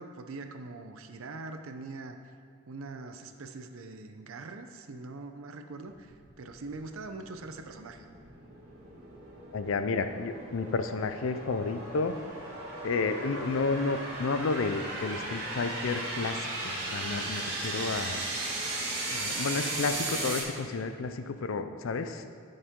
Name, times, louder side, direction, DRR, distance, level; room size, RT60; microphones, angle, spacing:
voice 1, 0.0-2.2 2.7-8.1, right 3 dB, 80° right, 7 dB, 0.6 m, -43 dB
sound 1, 5.9-20.4, right 2 dB, 50° right, 2.4 m, -37 dB
voice 2, 9.5-12.2 12.8-18.3 19.1-22.3, left 4 dB, 70° left, 9 dB, 0.5 m, -31 dB
13.5 x 5.5 x 3.7 m, 2.2 s
head